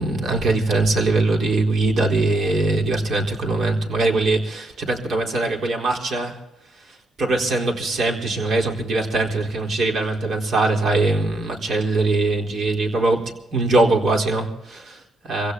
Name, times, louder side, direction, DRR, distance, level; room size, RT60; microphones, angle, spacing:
voice 1, 0.0-6.4 6.8-15.5, right 2 dB, 60° right, 0 dB, 4.1 m, -22 dB
27.5 x 16.5 x 2.9 m, 0.88 s
cardioid pair, 110°, 0 cm